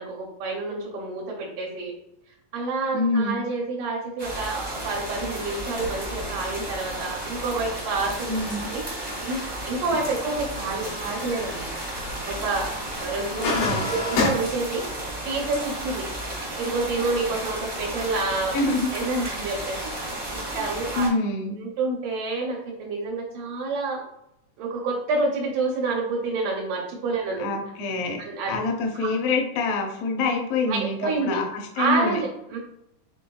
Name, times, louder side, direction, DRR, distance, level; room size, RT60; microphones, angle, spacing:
voice 1, 0.0-1.9 2.5-8.3 8.7-9.4 9.7-11.7 12.3-12.7 13.0-13.6 13.8-14.8 15.3-16.1 16.6-18.6 18.9-21.1 21.6-24.0 24.6-27.5 28.2-28.5 29.0-29.1 30.7-31.4 31.8-32.6, right 3 dB, 80° right, -3 dB, 2.4 m, -28 dB
voice 2, 2.9-3.4 8.3-8.7 13.3-13.9 18.5-18.9 20.5-20.7 21.0-21.6 27.4-28.2 28.5-32.2, left 3 dB, 70° left, 2 dB, 1.6 m, -26 dB
sound 1, 4.2-21.1, right 1 dB, 30° right, 0.7 m, -33 dB
sound 2, 4.8-14.3, left 3 dB, 85° left, 2.8 m, -33 dB
6.0 x 3.8 x 2.3 m, 0.81 s
omnidirectional pair, 3.7 m